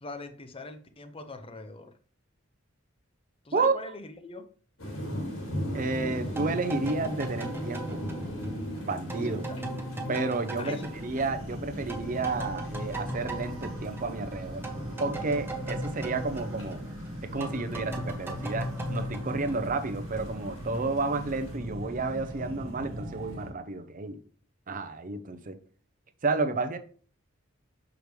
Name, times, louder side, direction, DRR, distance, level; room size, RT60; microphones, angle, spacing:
voice 1, 0.0-1.9 3.4-4.5 9.2-9.6 10.6-11.0, left 3 dB, 25° left, 0.6 m, -42 dB
sound 1, 4.8-21.6, equal, 70° left, 1.9 m, -40 dB
voice 2, 5.7-8.0 8.8-9.5 10.1-14.6 15.0-16.8 17.2-24.2 24.7-25.6 26.2-26.8, right 3 dB, 40° right, 0.6 m, -31 dB
sound 2, 6.3-11.6 11.9-20.1, right 1 dB, 10° right, 0.9 m, -38 dB
sound 3, 10.8-23.5, equal, 70° right, 1.4 m, -40 dB
6.7 x 4.8 x 3.1 m
head